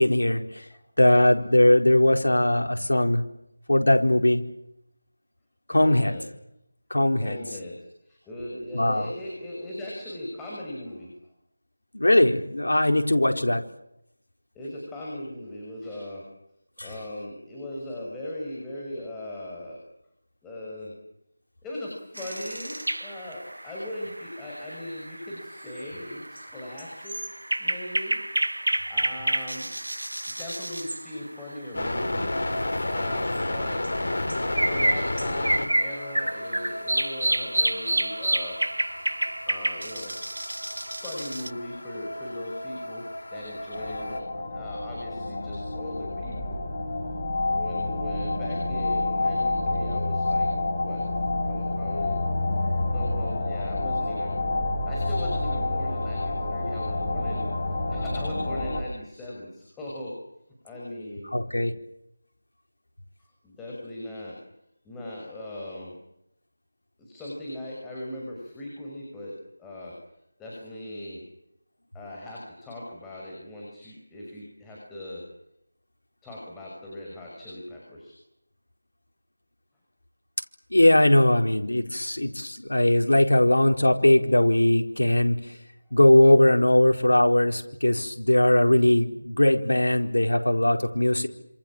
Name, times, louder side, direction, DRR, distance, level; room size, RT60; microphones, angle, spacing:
voice 1, 0.0-0.6 1.0-3.2 3.7-4.4 5.7-6.1 6.9-7.4 8.7-9.1 11.9-13.6 16.8-16.9 61.3-61.7 80.7-85.4 85.9-91.3, left 1 dB, 80° left, 4 dB, 4.4 m, -20 dB
voice 2, 5.7-6.2 7.2-11.1 13.3-13.5 14.5-16.2 16.8-19.8 20.4-20.9 21.6-27.1 27.6-28.1 28.8-29.7 30.4-34.1 34.5-38.6 39.5-40.2 40.9-43.0 43.3-46.6 47.5-50.5 50.8-51.0 51.5-52.2 52.9-54.4 54.9-57.5 57.9-60.1 60.6-61.3 63.2-64.4 64.8-66.0 67.0-69.9 70.4-71.2 71.9-75.2 76.2-78.2, left 1 dB, 5° left, -4 dB, 5.9 m, -39 dB
sound 1, 22.2-31.9 32.3-32.4 32.7-41.5, right 1 dB, 85° right, 1.0 m, -30 dB
sound 2, 31.7-44.2, left 1 dB, 60° left, 5.4 m, -33 dB
sound 3, 43.7-58.8, left 2 dB, 30° left, 7.5 m, -28 dB
28.0 x 27.0 x 7.5 m, 0.81 s
figure-of-eight pair, 165°, 0 cm